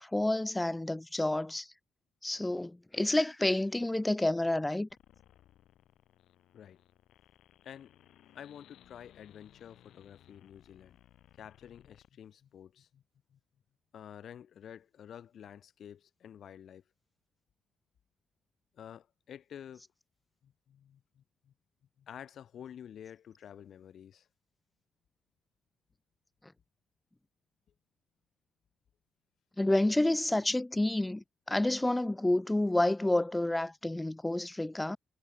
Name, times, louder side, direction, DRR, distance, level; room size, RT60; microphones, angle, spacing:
voice 1, 0.0-1.7 2.2-4.9 29.6-35.0, left 1 dB, 10° left, 0.5 m, -29 dB
sound 1, 4.9-12.1, left 12 dB, 80° left, 6.0 m, -62 dB
voice 2, 8.3-11.0 11.3-13.0 13.3-13.4 13.9-16.8 18.7-19.8 20.4-21.5 22.0-24.3, left 9 dB, 65° left, 2.1 m, -50 dB
cardioid pair, 95°, 0 cm